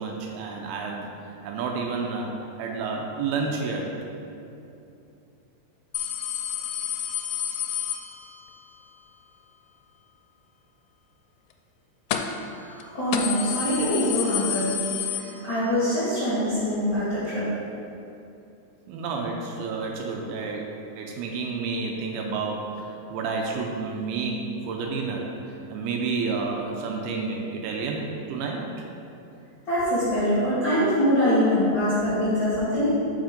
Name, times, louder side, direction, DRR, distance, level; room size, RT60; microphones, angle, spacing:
voice 1, 0.0-3.9 18.9-28.6, right 4 dB, 80° right, 1 dB, 2.5 m, -30 dB
sound 1, 5.9-8.6 12.1-12.5 12.8-12.9 13.1-15.9 16.2-16.3 17.3-17.4, left 10 dB, 80° left, 2.4 m, -30 dB
voice 2, 12.6-14.7 15.4-17.4 29.7-32.9, equal, 45° left, -12 dB, 1.6 m, -23 dB
6.2 x 5.0 x 5.1 m, 2.7 s
omnidirectional pair, 4.6 m